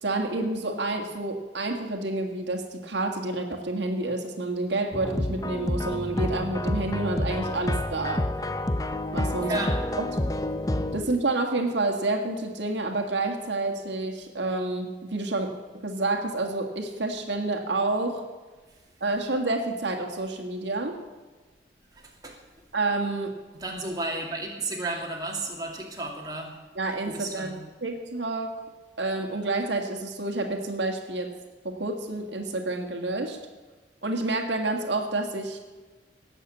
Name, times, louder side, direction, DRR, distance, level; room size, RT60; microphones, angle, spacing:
voice 1, 0.0-8.2 9.1-9.6 10.0-10.1 10.9-15.5 15.8-18.2 19.0-21.0 22.7-23.4 26.8-28.6 29.0-31.3 31.6-33.4 34.0-35.6, right 2 dB, 85° right, 3 dB, 1.9 m, -29 dB
sound 1, 4.9-11.0, left 1 dB, 20° left, 0.6 m, -29 dB
voice 2, 9.4-9.7 21.9-22.4 23.5-26.5 27.1-27.5, right 2 dB, 20° right, -1 dB, 2.5 m, -33 dB
18.0 x 7.2 x 8.4 m, 1.3 s
head